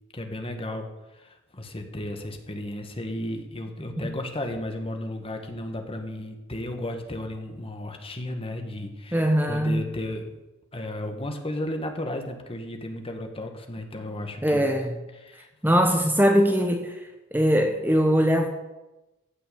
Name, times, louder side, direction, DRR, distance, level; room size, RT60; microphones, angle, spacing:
voice 1, 0.1-10.4 10.7-14.7 15.2-15.5, left 1 dB, 25° left, 5 dB, 1.6 m, -34 dB
voice 2, 9.1-9.9 14.4-15.0 15.6-18.5, equal, 10° right, 4 dB, 1.0 m, -21 dB
15.0 x 5.9 x 8.6 m, 1.0 s
head